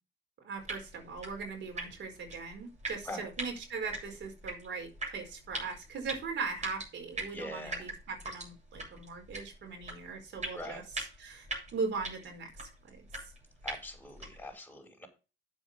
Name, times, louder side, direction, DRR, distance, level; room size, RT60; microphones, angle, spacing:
voice 1, 0.4-10.8 11.2-12.7, right 4 dB, 65° right, 4 dB, 4.7 m, -39 dB
sound 1, 0.6-14.5, right 2 dB, 35° right, 7.9 m, -43 dB
voice 2, 7.3-7.9 10.5-10.8 13.6-15.1, left 1 dB, 5° left, 1 dB, 5.3 m, -43 dB
9.6 x 7.5 x 5.3 m, 0.30 s
cardioid pair, 90°, 20 cm